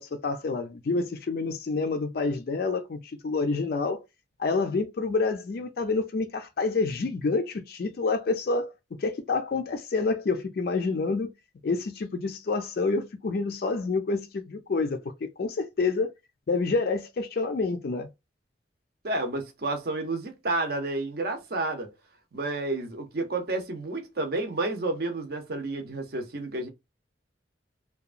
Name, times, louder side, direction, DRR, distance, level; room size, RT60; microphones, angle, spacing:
voice 1, 0.0-4.0 4.4-8.7 9.0-11.3 11.6-16.1 16.5-18.1, left 3 dB, 55° left, 0.4 m, -28 dB
voice 2, 19.0-21.9 22.3-26.7, right 2 dB, 55° right, 0.6 m, -30 dB
2.8 x 2.2 x 2.4 m
head